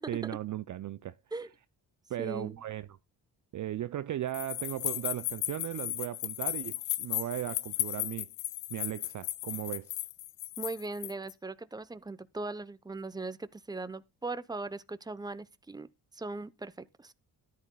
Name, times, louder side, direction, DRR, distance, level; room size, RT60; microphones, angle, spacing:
voice 1, 0.1-1.1 2.1-3.0 3.5-8.3 8.7-10.0, right 12 dB, 40° right, 0.5 m, -37 dB
voice 2, 2.2-2.6 10.6-15.9 16.1-17.1, right 3 dB, 10° right, 0.8 m, -39 dB
sound 1, 4.3-11.3, left 17 dB, 80° left, 0.6 m, -35 dB
13.5 x 10.5 x 2.3 m
hypercardioid pair, 45°, 47 cm